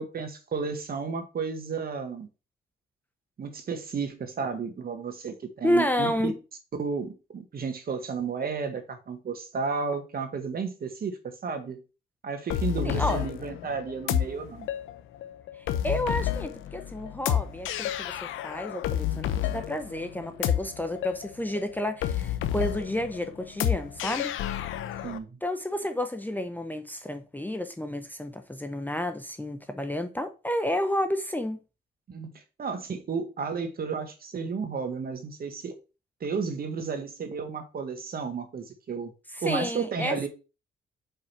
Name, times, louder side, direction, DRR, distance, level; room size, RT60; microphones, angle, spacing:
voice 1, 0.0-2.3 3.4-6.3 6.8-11.8 12.2-14.7 25.0-25.4 32.1-35.7 36.2-39.1 39.4-40.3, right 5 dB, 50° right, 2.0 m, -33 dB
voice 2, 5.6-6.3 12.8-13.2 15.8-18.1 18.4-24.4 25.4-31.6 39.3-40.2, left 1 dB, 10° left, 0.9 m, -30 dB
sound 1, 12.5-25.2, left 10 dB, 90° left, 0.8 m, -30 dB
5.5 x 4.8 x 5.9 m
cardioid pair, 90°, 20 cm